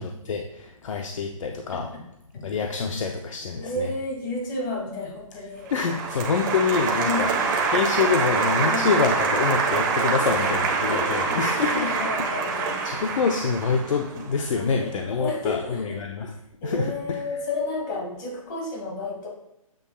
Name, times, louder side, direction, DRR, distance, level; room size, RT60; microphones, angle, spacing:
voice 1, 0.0-1.9 2.4-3.9 5.7-12.0 12.8-16.4 16.6-17.2, left 5 dB, 65° left, 3 dB, 0.8 m, -26 dB
voice 2, 3.6-5.7 7.0-7.4 8.7-8.9 10.3-10.5 10.9-11.0 11.3-13.0 14.5-15.9 16.6-19.3, left 2 dB, 35° left, -1 dB, 2.5 m, -32 dB
Applause, 5.7-14.8, right 4 dB, 35° right, 1.2 m, -25 dB
7.9 x 7.0 x 2.3 m, 0.84 s
hypercardioid pair, 160°, 18 cm